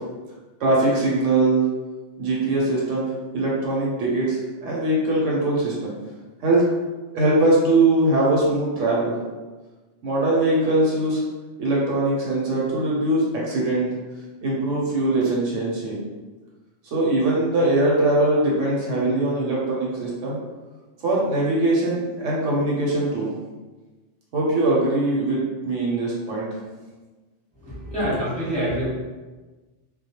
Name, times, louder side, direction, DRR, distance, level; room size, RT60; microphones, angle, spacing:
voice 1, 0.6-1.6 2.2-5.9 6.4-6.6 7.1-9.2 10.0-11.2 11.6-13.9 14.4-16.0 16.8-20.4 21.0-23.3 24.3-26.5, right 2 dB, 80° right, -4 dB, 1.0 m, -21 dB
voice 2, 27.6-28.8, equal, 5° left, -10 dB, 0.8 m, -26 dB
2.2 x 2.1 x 2.8 m, 1.2 s
omnidirectional pair, 1.3 m